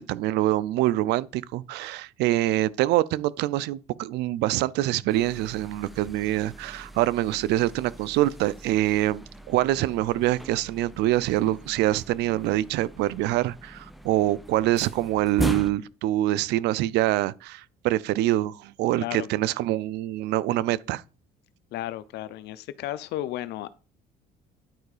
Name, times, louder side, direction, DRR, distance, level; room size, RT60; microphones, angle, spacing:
voice 1, 0.0-21.0, right 15 dB, 85° right, 0.5 m, -25 dB
sound 1, 5.1-15.7, equal, ahead, 1.0 m, -39 dB
voice 2, 21.7-23.7, left 14 dB, 80° left, 0.7 m, -33 dB
10.5 x 4.5 x 4.9 m
cardioid pair, 110°, 17 cm